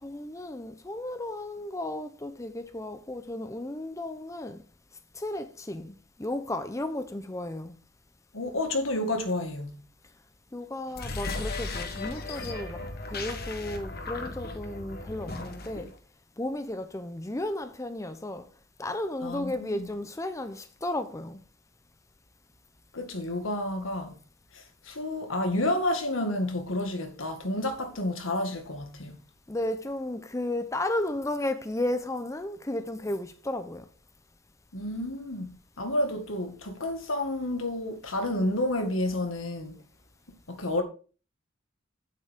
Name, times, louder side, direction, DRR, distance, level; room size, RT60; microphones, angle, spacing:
voice 1, 0.0-4.6 5.1-7.7 10.5-15.9 16.4-18.5 18.8-21.4 29.5-33.9, left 1 dB, 15° left, 0.7 m, -34 dB
voice 2, 8.3-9.8 19.2-19.9 22.9-24.1 24.9-29.2 34.7-35.5 35.8-39.7 40.5-40.8, left 1 dB, 85° left, 1.9 m, -30 dB
sound 1, 10.9-15.9, left 3 dB, 50° left, 1.5 m, -36 dB
9.2 x 8.1 x 3.6 m
head